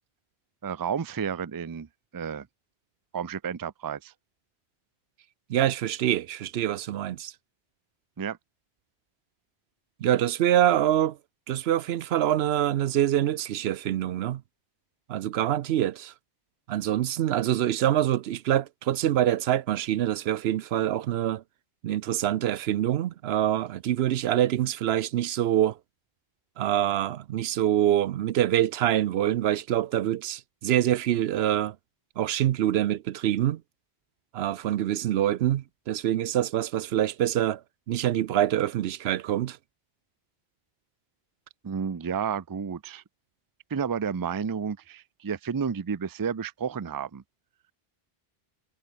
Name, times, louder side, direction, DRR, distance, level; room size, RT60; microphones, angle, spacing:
voice 1, 0.6-1.9 2.1-2.5 3.1-4.1 8.2-8.4 41.6-43.0 43.7-47.2, right 6 dB, 30° right, 0.4 m, -31 dB
voice 2, 5.5-7.3 10.0-11.2 11.5-14.4 15.1-16.1 16.7-21.4 21.8-25.8 26.6-31.8 32.2-33.6 34.3-37.6 37.9-39.6, right 12 dB, 80° right, 0.8 m, -25 dB
omnidirectional pair, 1.1 m